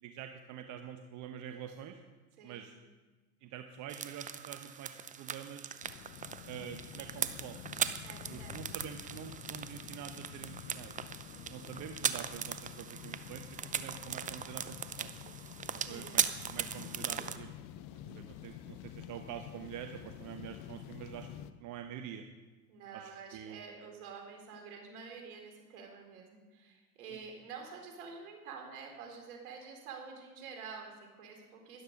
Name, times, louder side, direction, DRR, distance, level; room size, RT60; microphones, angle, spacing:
voice 1, 0.0-2.0 2.4-2.7 3.4-5.7 6.5-7.6 8.3-11.0 11.5-15.1 15.7-17.5 17.9-21.3 21.6-22.3 22.9-23.6, right 9 dB, 40° right, 7 dB, 1.0 m, -46 dB
voice 2, 2.4-2.8 8.0-8.6 11.3-11.6 15.9-16.3 22.7-31.8, right 5 dB, 65° right, 2 dB, 4.0 m, -48 dB
sound 1, 3.9-17.4, right 8 dB, 15° right, 0.6 m, -39 dB
sound 2, 5.8-21.5, left 11 dB, 45° left, 0.8 m, -49 dB
13.0 x 11.5 x 5.3 m, 1.3 s
figure-of-eight pair, 80°, 47 cm